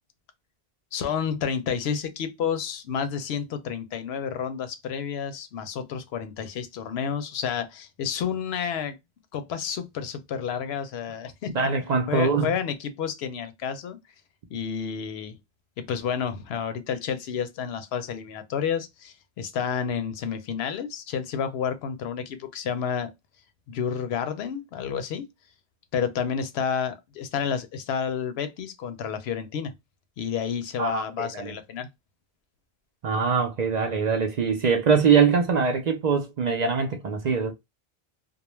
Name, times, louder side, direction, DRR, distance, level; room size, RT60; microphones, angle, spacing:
voice 1, 0.9-8.9 9.3-11.5 12.1-14.0 14.5-15.4 15.8-23.1 23.7-25.3 25.9-29.8 30.2-31.9, left 7 dB, 80° left, 0.8 m, -30 dB
voice 2, 11.5-12.6 30.8-31.6 33.0-37.5, right 5 dB, 55° right, 0.5 m, -23 dB
2.3 x 2.1 x 3.0 m
omnidirectional pair, 1.1 m